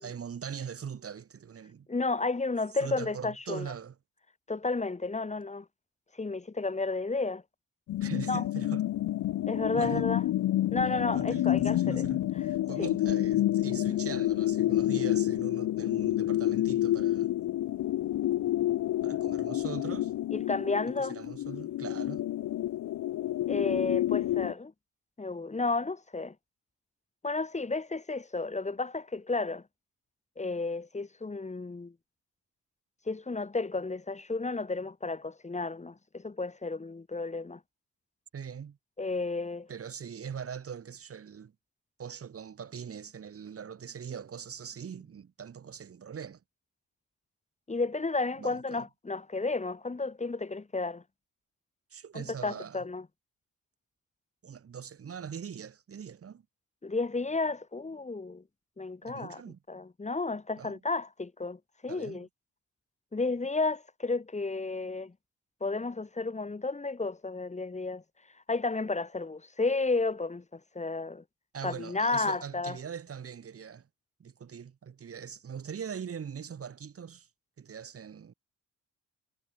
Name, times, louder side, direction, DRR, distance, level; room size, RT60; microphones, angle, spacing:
voice 1, 0.0-1.9 2.8-4.0 8.0-8.9 9.8-10.1 11.1-17.3 19.0-20.1 21.0-22.3 38.3-38.8 39.7-41.5 42.0-46.4 48.4-48.8 51.9-52.9 54.4-56.4 59.0-59.6 60.6-60.8 61.9-62.3 71.5-73.9 74.2-77.3 77.6-78.3, right 7 dB, 50° right, 6.0 m, -41 dB
voice 2, 1.9-3.7 4.5-5.7 6.2-7.4 8.3-8.4 9.5-10.2 10.7-12.0 12.8-12.9 20.3-21.2 23.5-24.7 25.2-26.3 27.2-29.6 30.4-31.9 33.1-37.6 39.0-39.7 47.7-51.0 52.1-53.0 56.8-58.4 58.8-59.4 59.7-62.3 63.1-65.1 65.6-68.0 68.5-71.2 71.6-72.8, left 3 dB, 25° left, 5.5 m, -32 dB
sound 1, 7.9-24.5, left 14 dB, 80° left, 2.9 m, -29 dB
cardioid pair, 90°, 30 cm